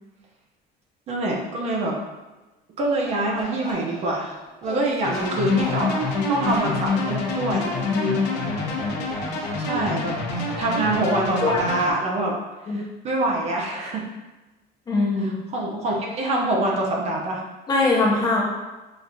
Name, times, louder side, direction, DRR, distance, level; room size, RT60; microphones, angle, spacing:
voice 1, 1.1-2.0 2.8-4.4 4.6-6.0 6.3-7.8 9.5-10.2 10.5-14.0 15.2-17.4, right 2 dB, 40° right, -1 dB, 0.6 m, -25 dB
Bark, 3.0-10.0 10.3-10.5, equal, 5° left, 0.9 m, -39 dB
sound 1, 5.0-11.9, left 3 dB, 80° left, 0.7 m, -26 dB
voice 2, 14.9-15.4 17.7-18.4, left 3 dB, 25° left, -3 dB, 0.6 m, -22 dB
5.8 x 2.4 x 2.6 m, 1.1 s
cardioid pair, 175°, 17 cm